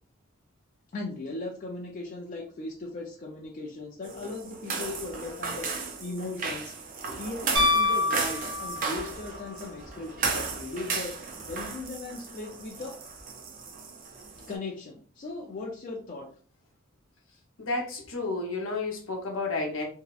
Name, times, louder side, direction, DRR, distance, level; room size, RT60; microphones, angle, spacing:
voice 1, 0.9-6.7 7.2-11.1 11.5-12.9 14.5-16.3, left 2 dB, 40° left, 0 dB, 0.4 m, -38 dB
sound 1, 4.0-14.5, right 4 dB, 40° right, 0.4 m, -35 dB
Piano, 7.5-9.1 11.5-11.6, left 2 dB, 90° right, 0.7 m, -25 dB
voice 2, 17.6-19.8, left 3 dB, 70° left, 1 dB, 0.7 m, -31 dB
2.6 x 2.0 x 2.3 m, 0.42 s
head